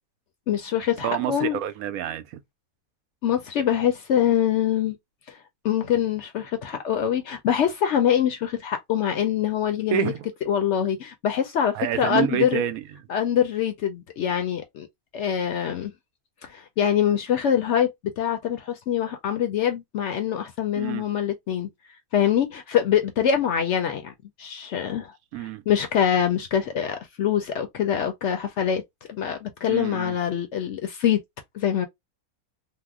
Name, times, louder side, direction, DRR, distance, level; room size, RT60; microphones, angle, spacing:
voice 1, 0.5-1.6 3.2-5.0 5.3-5.4 5.6-10.1 10.5-12.6 13.1-14.9 15.1-15.9 16.5-17.9 18.2-21.7 22.1-24.1 24.4-25.1 25.7-28.8 29.1-31.2 31.5-31.9, left 9 dB, 65° left, 0.7 m, -24 dB
voice 2, 1.0-2.4 9.9-10.3 11.7-12.8 20.7-21.0 25.3-25.6 29.7-30.2, right 11 dB, 75° right, 1.0 m, -28 dB
2.8 x 2.0 x 3.4 m
omnidirectional pair, 1.5 m